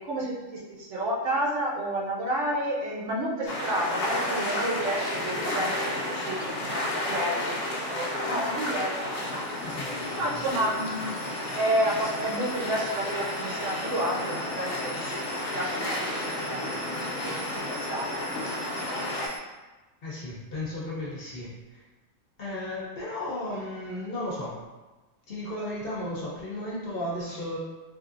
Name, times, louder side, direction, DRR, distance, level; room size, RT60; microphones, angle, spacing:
voice 1, 0.0-7.4 7.9-8.9 9.2-9.7 10.1-11.1 11.5-15.2 15.5-16.7 17.1-18.4, right 1 dB, 65° right, -4 dB, 0.9 m, -31 dB
sound 1, 3.5-19.3, left 1 dB, 80° left, 1.0 m, -32 dB
sound 2, 9.1-19.4, right 1 dB, 30° right, 0.6 m, -45 dB
voice 2, 9.6-10.4 20.0-21.8 22.4-24.5 25.3-27.6, left 1 dB, 55° left, -6 dB, 0.8 m, -34 dB
3.2 x 2.6 x 2.4 m, 1.2 s
omnidirectional pair, 1.4 m